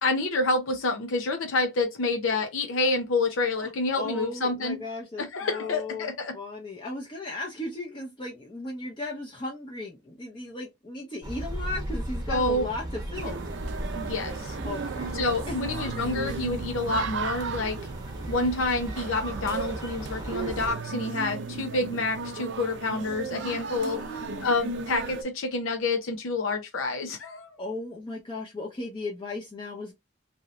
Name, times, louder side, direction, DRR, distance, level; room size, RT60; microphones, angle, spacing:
voice 1, 0.0-4.8 5.2-6.3 12.3-12.6 13.9-14.6 15.1-17.8 18.3-24.0 24.4-27.5, left 2 dB, 85° left, 0.6 m, -28 dB
voice 2, 3.6-12.8 13.1-13.4 14.6-15.1 15.5-15.6 23.8-24.5 27.6-29.9, left 2 dB, 25° left, 0.6 m, -36 dB
sound 1, 11.2-20.7, right 1 dB, 20° right, 0.8 m, -36 dB
sound 2, 13.1-25.2, right 4 dB, 65° right, 0.5 m, -35 dB
2.8 x 2.6 x 3.1 m
head